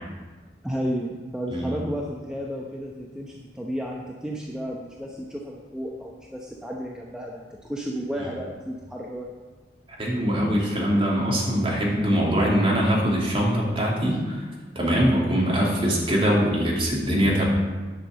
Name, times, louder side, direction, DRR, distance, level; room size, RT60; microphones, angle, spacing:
voice 1, 0.6-9.3, equal, 5° right, -2 dB, 0.8 m, -33 dB
voice 2, 10.0-14.4 14.7-17.4, equal, 30° right, -4 dB, 2.7 m, -22 dB
10.0 x 6.0 x 7.3 m, 1.3 s
head